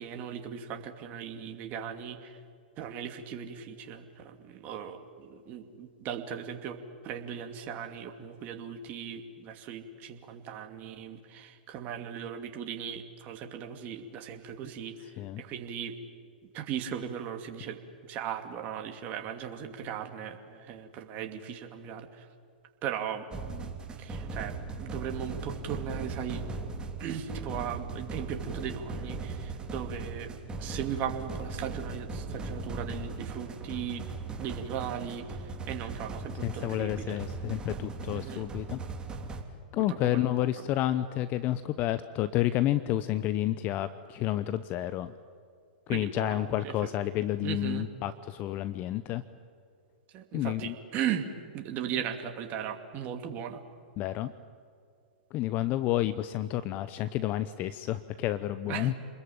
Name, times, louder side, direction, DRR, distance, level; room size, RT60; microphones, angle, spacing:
voice 1, 0.0-2.4 2.8-15.0 15.4-15.9 16.5-17.8 18.1-22.3 22.8-23.7 24.0-26.4 27.0-30.3 30.6-34.1 34.4-37.2 38.1-38.4 39.9-40.5 45.9-46.7 47.4-47.9 50.1-51.3 51.5-53.6 58.7-59.0, right 8 dB, 35° right, 5 dB, 2.6 m, -38 dB
sound 1, 23.3-39.4, right 3 dB, 20° right, 3.3 m, -38 dB
voice 2, 36.4-38.8 39.7-45.1 45.9-49.2 50.3-50.7 54.0-54.3 55.3-58.9, left 13 dB, 35° left, 14 dB, 0.9 m, -30 dB
28.0 x 21.0 x 8.9 m, 2.3 s
hypercardioid pair, 115°, 5 cm